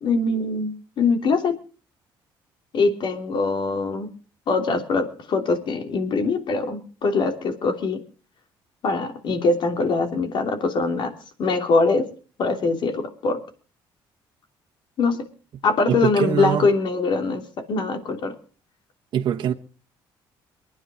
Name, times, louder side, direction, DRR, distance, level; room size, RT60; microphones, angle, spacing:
voice 1, 0.0-1.5 2.7-4.1 4.5-8.0 8.8-11.1 11.4-12.1 12.4-13.4 15.0-15.2 15.6-17.4 17.7-18.3, left 3 dB, 60° left, 3.0 m, -22 dB
voice 2, 15.9-16.7 19.1-19.5, right 10 dB, 60° right, 1.3 m, -23 dB
23.5 x 9.7 x 4.9 m
cardioid pair, 95°, 9 cm